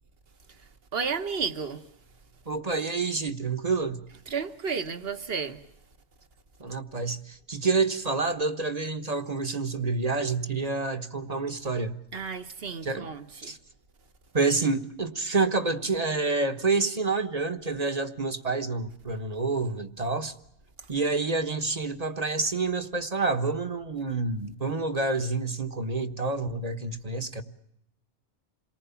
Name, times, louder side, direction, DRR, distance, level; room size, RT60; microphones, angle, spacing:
voice 1, 0.9-1.8 4.3-5.6 12.1-13.5, right 5 dB, 60° right, 1.4 m, -32 dB
voice 2, 2.5-4.0 6.6-12.0 12.8-13.1 13.4-13.6 14.3-20.3 20.9-27.4, right 3 dB, 35° right, 1.2 m, -28 dB
28.0 x 19.0 x 7.0 m
omnidirectional pair, 1.1 m